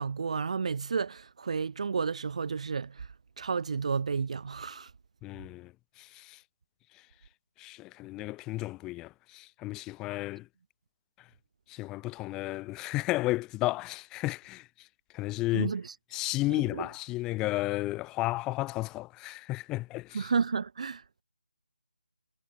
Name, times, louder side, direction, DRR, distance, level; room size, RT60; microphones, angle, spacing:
voice 1, 0.0-3.1 3.4-4.9 15.5-15.9 16.5-16.9 20.1-21.2, right 5 dB, 45° right, 1.0 m, -32 dB
voice 2, 5.2-5.7 6.0-6.4 7.6-10.5 11.7-14.7 15.1-15.7 16.1-20.3, left 19 dB, 10° left, 3.2 m, -33 dB
figure-of-eight pair, 160°, 5 cm